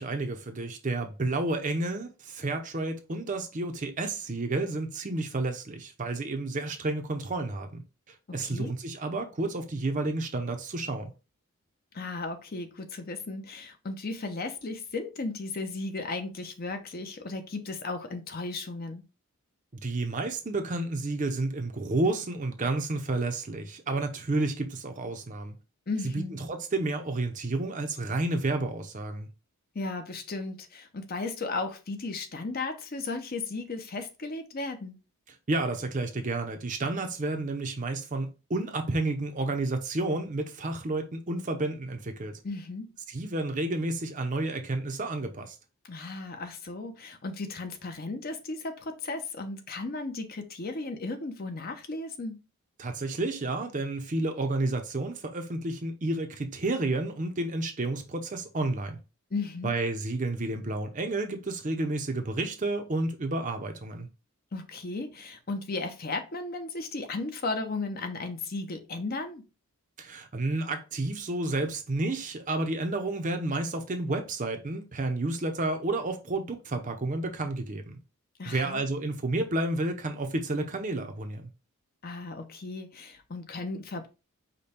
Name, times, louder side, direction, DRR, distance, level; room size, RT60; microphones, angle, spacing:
voice 1, 0.0-11.1 19.7-25.6 26.1-29.3 35.5-42.4 43.1-45.6 52.8-59.0 59.6-64.1 70.0-78.0 78.5-81.5, right 2 dB, 35° right, 0.6 m, -31 dB
voice 2, 8.4-8.7 11.9-19.0 25.9-26.4 29.7-35.0 42.4-42.9 45.8-52.4 59.3-59.8 64.5-69.4 78.4-78.8 82.0-84.1, left 3 dB, 40° left, 0.6 m, -35 dB
5.2 x 2.2 x 4.2 m
head